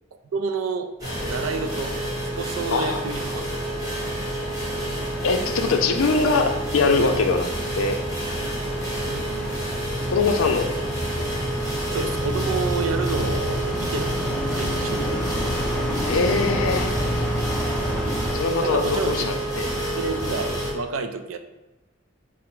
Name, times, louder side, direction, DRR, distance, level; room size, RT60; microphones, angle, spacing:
voice 1, 0.1-0.9 1.2-2.0 2.4-3.8 9.1-9.8 11.9-15.3 18.6-19.3 20.0-21.4, right 4 dB, 80° right, 8 dB, 0.4 m, -30 dB
sound 1, 1.0-20.7, right 1 dB, 20° right, 1.1 m, -28 dB
sound 2, 4.9-18.3, left 1 dB, 5° left, 0.4 m, -30 dB
voice 2, 5.2-7.5 7.8-8.0 10.1-10.7 16.0-16.9 18.3-19.7, left 4 dB, 80° left, 6 dB, 0.4 m, -22 dB
4.7 x 2.0 x 4.4 m, 1.1 s
head